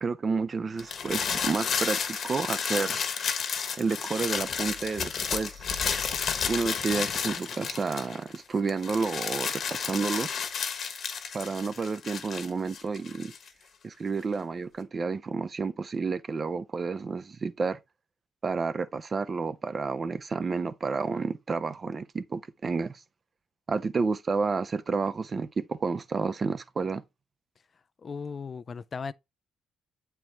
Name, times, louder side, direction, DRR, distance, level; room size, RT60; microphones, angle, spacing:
voice 1, 0.0-3.0 3.8-5.6 6.5-10.3 11.3-13.3 13.8-17.8 18.4-23.0 23.7-27.0, right 4 dB, 40° right, 0.6 m, -30 dB
sound 1, 0.8-8.4 8.7-13.5, left 6 dB, 60° left, 1.3 m, -32 dB
voice 2, 28.0-29.1, left 5 dB, 40° left, 0.4 m, -36 dB
7.6 x 4.6 x 3.4 m
cardioid pair, 90°, 0 cm